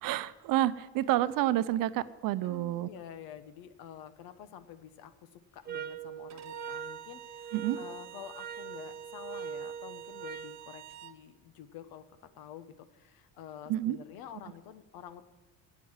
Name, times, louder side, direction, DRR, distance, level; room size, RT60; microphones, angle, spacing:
voice 1, 0.0-2.9 7.5-7.8 13.7-14.0, right 14 dB, 65° right, 14 dB, 0.7 m, -29 dB
voice 2, 2.4-12.0 12.3-15.2, left 9 dB, 75° left, 12 dB, 1.2 m, -48 dB
sound 1, 5.7-10.6, right 7 dB, 25° right, 0.7 m, -42 dB
Bowed string instrument, 6.3-11.2, right 13 dB, 45° right, 1.0 m, -49 dB
15.5 x 8.5 x 7.3 m, 1.2 s
cardioid pair, 145°, 36 cm